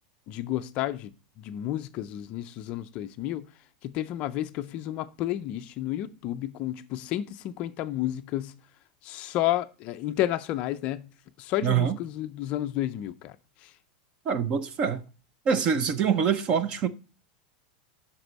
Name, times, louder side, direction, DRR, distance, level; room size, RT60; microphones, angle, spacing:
voice 1, 0.3-1.1 1.4-3.5 3.8-8.5 9.0-11.1 11.4-13.4 13.6-13.7, left 13 dB, 30° left, 0.4 m, -31 dB
voice 2, 11.6-12.0 14.3-15.0 15.5-16.9, right 7 dB, 25° right, 0.5 m, -25 dB
8.0 x 5.9 x 4.0 m
supercardioid pair, 180°, 4 cm